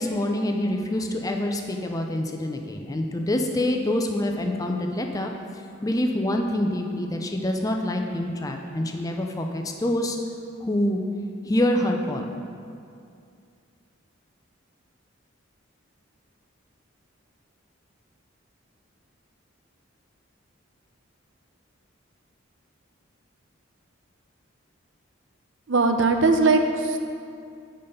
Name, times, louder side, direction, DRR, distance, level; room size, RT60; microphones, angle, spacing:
voice 1, 0.0-5.3 5.8-10.2 10.6-11.0 11.4-12.3, left 1 dB, 15° left, 3 dB, 0.5 m, -26 dB
voice 2, 25.7-27.0, right 3 dB, 65° right, 5 dB, 0.6 m, -20 dB
8.7 x 5.2 x 5.5 m, 2.4 s
head